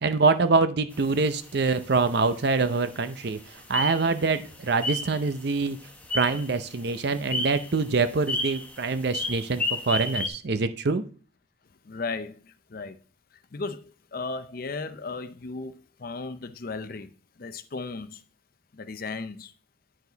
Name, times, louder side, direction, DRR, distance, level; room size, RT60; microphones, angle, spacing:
voice 1, 0.0-3.4 3.7-5.8 6.1-11.0, right 4 dB, 55° right, 0.6 m, -25 dB
sound 1, 0.9-10.3, left 1 dB, 10° left, 0.8 m, -34 dB
voice 2, 11.8-13.0 13.5-17.1 17.4-18.2 18.7-19.5, left 3 dB, 50° left, 0.6 m, -36 dB
9.8 x 4.8 x 3.9 m
head